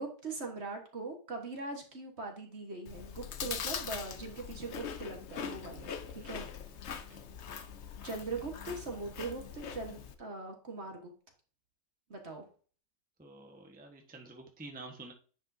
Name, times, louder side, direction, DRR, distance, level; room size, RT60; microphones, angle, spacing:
voice 1, 0.0-6.5 8.0-11.1 12.1-12.4, right 3 dB, 40° right, 2 dB, 1.6 m, -41 dB
Chewing mastication, 2.9-10.2, left 7 dB, 55° left, 0.8 m, -42 dB
voice 2, 13.2-15.1, right 2 dB, 5° right, 2 dB, 1.0 m, -49 dB
9.9 x 5.4 x 2.7 m, 0.39 s
omnidirectional pair, 1.9 m